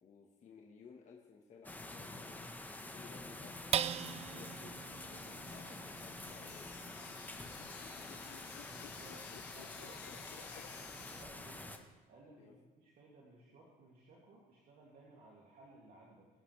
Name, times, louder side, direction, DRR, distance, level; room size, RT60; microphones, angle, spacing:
voice 1, 0.0-2.5 2.9-3.8 4.3-8.3 12.4-12.5, left 5 dB, 45° left, -1 dB, 1.5 m, -58 dB
sound 1, 1.6-11.8, left 2 dB, 10° left, 1.2 m, -48 dB
sound 2, 3.5-11.2, left 16 dB, 80° left, 0.4 m, -55 dB
sound 3, 3.7-10.4 10.9-11.0 11.4-11.9, right 9 dB, 40° right, 0.4 m, -43 dB
voice 2, 8.7-16.3, right 2 dB, 60° right, -4 dB, 2.7 m, -60 dB
22.5 x 9.9 x 3.4 m, 1.2 s
cardioid pair, 110°, 17 cm